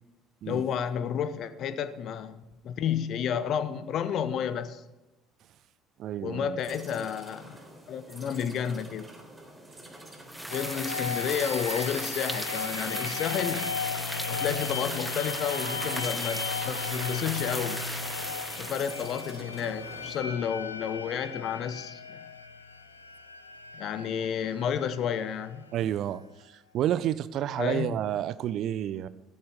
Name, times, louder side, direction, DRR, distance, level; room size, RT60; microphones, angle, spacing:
voice 1, 0.5-4.8 6.2-7.6 7.9-9.1 10.5-13.7 14.3-17.8 18.6-22.2 23.7-25.6 27.6-27.9, left 8 dB, 50° left, 12 dB, 0.9 m, -31 dB
voice 2, 6.0-6.5 25.7-29.1, right 11 dB, 50° right, 16 dB, 0.6 m, -30 dB
sound 1, 6.6-20.2, right 1 dB, 15° right, 3.6 m, -47 dB
sound 2, 10.3-19.3, equal, ahead, 0.7 m, -36 dB
sound 3, 10.5-26.1, left 5 dB, 85° left, 0.7 m, -37 dB
15.5 x 12.5 x 3.6 m, 1.0 s
figure-of-eight pair, 55°, 0 cm